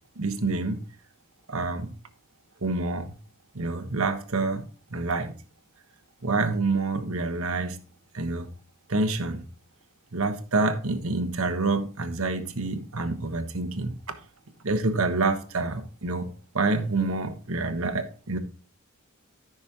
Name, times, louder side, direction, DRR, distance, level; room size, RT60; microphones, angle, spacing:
voice 1, 0.2-0.8 1.5-1.9 2.6-3.1 3.5-5.3 6.2-7.8 8.1-8.5 8.9-9.4 10.1-13.9 14.6-16.3 16.5-18.4, right 3 dB, 70° right, 1.3 m, -27 dB
13.5 x 6.2 x 3.0 m
head